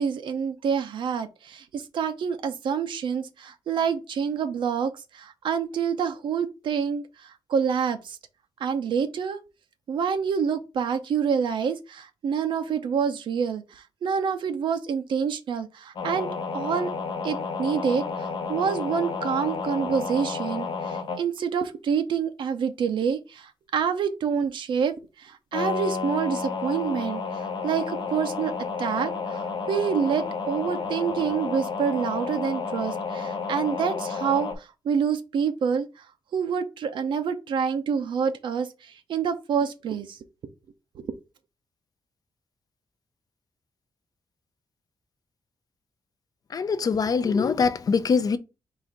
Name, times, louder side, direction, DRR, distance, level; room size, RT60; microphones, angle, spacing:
voice 1, 0.0-8.2 8.6-9.4 9.9-16.3 16.5-16.9 17.2-28.5 28.8-36.1 36.3-40.2 41.0-41.1, right 7 dB, 80° right, 0.5 m, -27 dB
sound 1, 16.0-21.2 25.5-34.6, left 5 dB, 65° left, 0.8 m, -31 dB
voice 2, 46.5-48.4, left 5 dB, 50° left, 0.4 m, -23 dB
4.0 x 2.4 x 4.6 m
cardioid pair, 95°, 8 cm